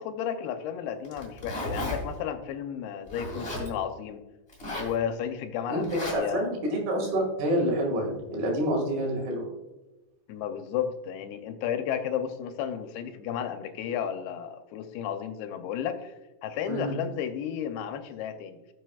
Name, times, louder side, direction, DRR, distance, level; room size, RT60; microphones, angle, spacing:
voice 1, 0.0-4.2 4.8-6.5 10.3-16.1 16.4-18.7, left 9 dB, 85° left, 8 dB, 2.7 m, -33 dB
Zipper (clothing), 1.0-2.0 3.1-3.7 4.5-4.9 5.8-6.1, left 1 dB, 20° left, 2.0 m, -34 dB
voice 2, 6.1-9.5 16.7-16.9, right 1 dB, 80° right, 0 dB, 4.0 m, -27 dB
17.5 x 7.0 x 2.4 m, 1.0 s
omnidirectional pair, 4.5 m